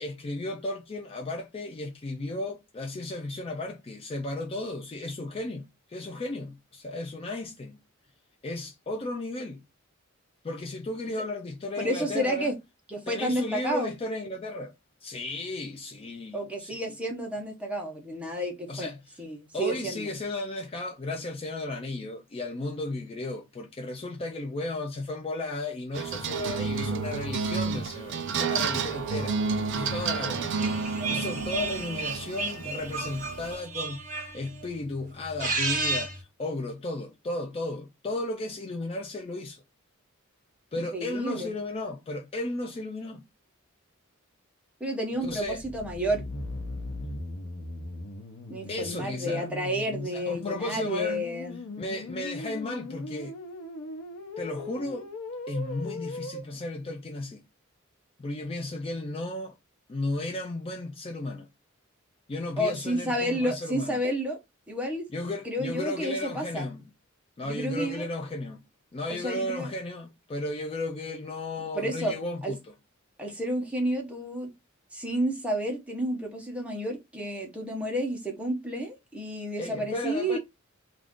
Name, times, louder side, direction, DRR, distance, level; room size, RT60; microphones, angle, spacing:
voice 1, 0.0-7.8 8.4-9.6 10.4-12.5 13.1-14.7 15.0-16.9 18.7-19.2 19.5-29.4 29.7-30.5 31.1-39.6 40.7-43.2 45.2-45.6 48.7-49.5 50.0-51.2 51.8-53.4 54.4-55.1 55.5-57.4 58.2-59.5 59.9-61.5 62.3-64.0 65.1-66.8 67.4-68.6 68.9-72.7 79.6-80.4, left 2 dB, 25° left, 0.4 m, -34 dB
voice 2, 11.8-12.5 12.9-13.9 16.3-18.9 19.2-20.1 40.9-41.5 44.8-46.3 48.5-51.6 62.6-64.4 64.7-65.1 65.4-66.7 67.4-68.1 69.1-69.7 71.7-72.1 72.4-72.5 73.2-74.5 74.9-80.4, right 1 dB, 5° right, 0.8 m, -31 dB
sound 1, 25.9-33.5, right 5 dB, 60° right, 0.5 m, -31 dB
sound 2, 30.6-34.7 35.2-36.2, right 3 dB, 40° right, 0.9 m, -32 dB
sound 3, 45.2-56.4, left 2 dB, 85° left, 0.7 m, -39 dB
2.4 x 2.4 x 3.5 m
head